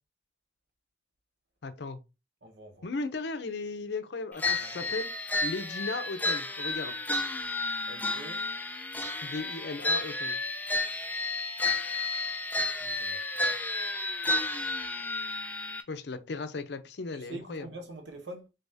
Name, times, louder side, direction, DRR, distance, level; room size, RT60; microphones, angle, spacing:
voice 1, 1.6-2.0 2.8-5.1 5.4-6.9 9.2-10.4 15.9-17.7, left 3 dB, 65° left, 0.5 m, -36 dB
voice 2, 2.4-2.9 4.6-4.9 7.9-8.5 12.8-13.3 17.1-18.5, right 2 dB, 75° right, 0.9 m, -45 dB
sound 1, 4.4-15.8, left 2 dB, 10° left, 0.4 m, -31 dB
3.9 x 3.4 x 2.6 m
head